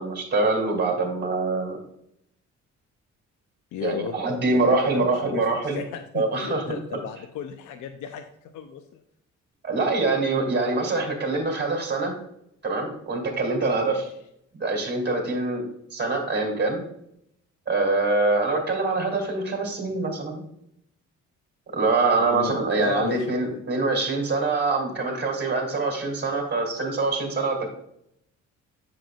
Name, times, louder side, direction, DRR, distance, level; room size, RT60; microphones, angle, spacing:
voice 1, 0.0-1.8 3.8-5.8 6.1-6.6 9.6-12.1 12.6-14.1 14.6-15.6 15.9-16.8 17.7-20.4 21.7-27.7, right 3 dB, 35° right, 1 dB, 2.8 m, -24 dB
voice 2, 3.7-9.0 13.8-14.0 22.2-23.6, left 8 dB, 80° left, 7 dB, 0.7 m, -35 dB
7.7 x 6.8 x 2.4 m, 0.74 s
cardioid pair, 90°, 30 cm